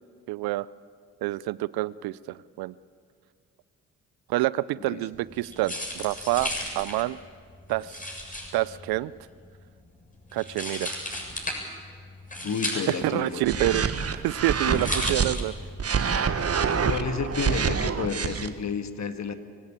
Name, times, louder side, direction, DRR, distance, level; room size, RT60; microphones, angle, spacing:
voice 1, 0.3-0.7 1.2-2.7 4.3-7.2 7.7-8.1 8.5-9.1 10.3-11.0 12.7-13.8 14.1-15.5, right 17 dB, 70° right, 20 dB, 0.6 m, -27 dB
sound 1, 5.1-15.9, left 1 dB, 20° left, 7.5 m, -35 dB
voice 2, 12.4-13.8 14.7-14.9 16.8-19.3, left 6 dB, 45° left, 9 dB, 1.8 m, -31 dB
sound 2, 13.4-15.3 15.8-18.5, right 6 dB, 40° right, 1.5 m, -26 dB
24.0 x 16.5 x 8.9 m, 2.1 s
hypercardioid pair, 45°, 38 cm